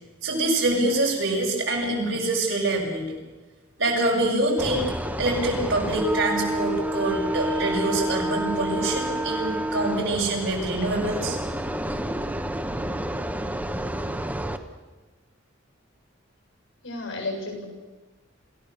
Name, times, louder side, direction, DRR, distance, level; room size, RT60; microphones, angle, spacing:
voice 1, 0.2-3.2 3.8-4.9 5.2-11.4, right 2 dB, 65° right, -2 dB, 6.6 m, -25 dB
sound 1, 4.6-14.6, right 1 dB, 10° right, 1.1 m, -29 dB
voice 2, 16.8-17.6, left 2 dB, 85° left, 2 dB, 7.5 m, -32 dB
27.5 x 15.5 x 6.8 m, 1.2 s
head